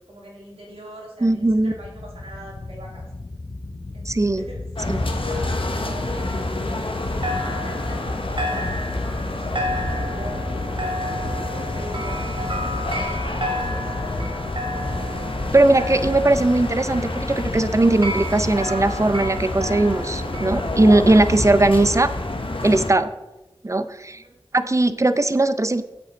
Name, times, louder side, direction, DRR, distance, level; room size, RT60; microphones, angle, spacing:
voice 1, 0.1-3.0 3.9-14.4 24.1-24.4, right 1 dB, 85° right, -3 dB, 2.6 m, -42 dB
sound 1, 1.2-17.8, left 2 dB, 45° left, 0.5 m, -36 dB
voice 2, 1.2-1.7 4.1-4.4 4.9-5.0 15.5-22.1 22.6-23.1 23.6-24.2 24.5-25.8, right 2 dB, 30° right, 12 dB, 0.5 m, -19 dB
sound 2, 4.8-22.9, left 2 dB, 65° left, 0.9 m, -28 dB
sound 3, 5.0-7.0 7.2-21.1, equal, 60° right, 1.5 m, -32 dB
8.0 x 7.8 x 4.0 m, 1.0 s
wide cardioid pair, 60°, 10 cm